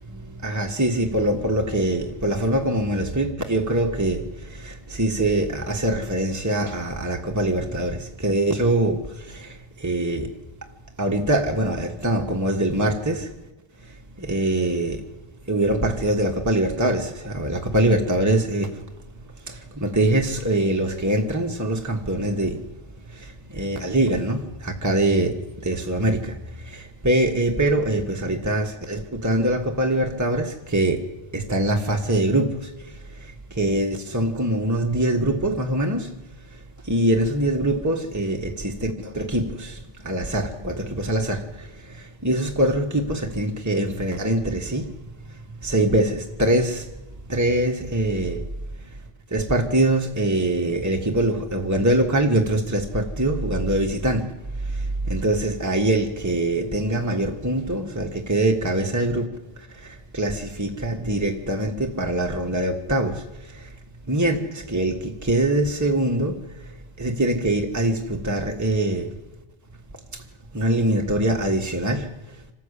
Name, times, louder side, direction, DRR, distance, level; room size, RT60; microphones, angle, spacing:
voice 1, 0.1-10.3 11.0-13.3 13.8-15.0 15.5-18.8 19.4-22.6 23.1-36.1 36.5-44.9 45.3-46.9 47.3-48.5 48.8-49.0 49.3-54.3 54.6-59.3 59.6-63.7 64.1-66.7 67.0-69.1 70.1-70.2 70.5-72.4, right 1 dB, 15° right, 3 dB, 1.5 m, -24 dB
26.5 x 13.0 x 8.4 m, 1.0 s
omnidirectional pair, 1.1 m